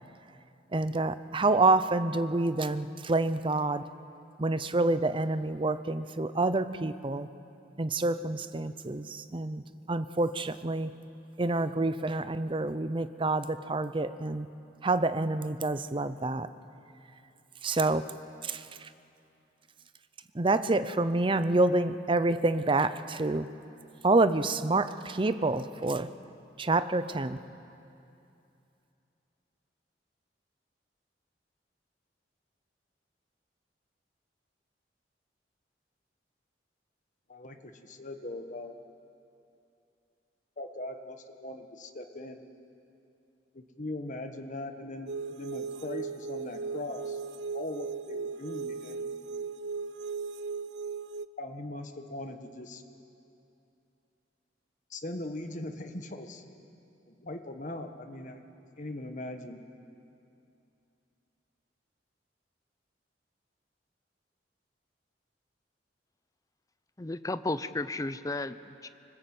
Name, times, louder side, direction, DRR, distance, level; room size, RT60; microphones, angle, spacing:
voice 1, 0.7-3.8 4.4-7.3 7.8-9.6 9.9-10.9 11.4-14.5 14.8-16.5 17.6-18.1 18.4-18.6 20.3-23.5 24.0-26.1 26.6-27.4, right 2 dB, 30° right, 13 dB, 0.6 m, -27 dB
voice 2, 37.3-38.7 40.6-42.4 43.5-47.2 47.5-49.1 51.4-52.8 54.9-56.4 57.1-58.4 58.8-59.6, left 1 dB, 45° left, 6 dB, 1.4 m, -40 dB
sound 1, 45.1-51.3, right 5 dB, 75° right, 0.5 m, -37 dB
voice 3, 67.0-68.9, left 2 dB, 20° left, 13 dB, 0.6 m, -33 dB
25.5 x 20.0 x 7.9 m, 2.7 s
head